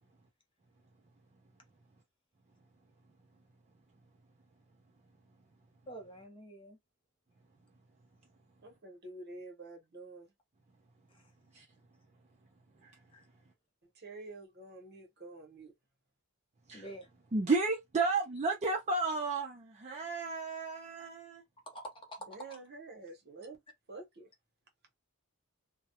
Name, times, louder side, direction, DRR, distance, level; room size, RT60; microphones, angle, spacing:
voice 1, 5.9-6.8 11.1-11.2 13.1-13.2 16.7-17.1 21.7-22.6, right 1 dB, 25° left, 0.6 m, -47 dB
voice 2, 8.6-10.3 13.9-15.7 22.3-23.6 23.9-24.3, right 2 dB, 50° right, 0.8 m, -48 dB
voice 3, 17.3-21.4, right 3 dB, 30° right, 0.4 m, -32 dB
2.2 x 2.0 x 2.8 m
head